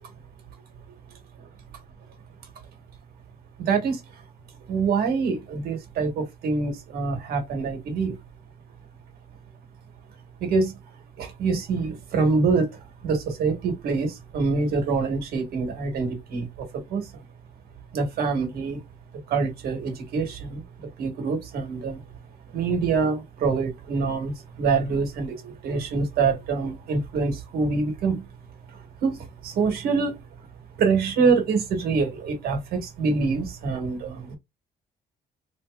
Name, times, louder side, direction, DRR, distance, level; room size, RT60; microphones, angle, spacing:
voice 1, 3.6-4.0 4.7-8.2 10.4-10.7 11.2-12.7 13.0-17.1 17.9-18.8 19.3-22.0 22.5-28.2 28.7-30.2 30.8-34.4, right 4 dB, 75° right, 1.6 m, -25 dB
4.0 x 2.7 x 2.4 m
cardioid pair, 175°, 16 cm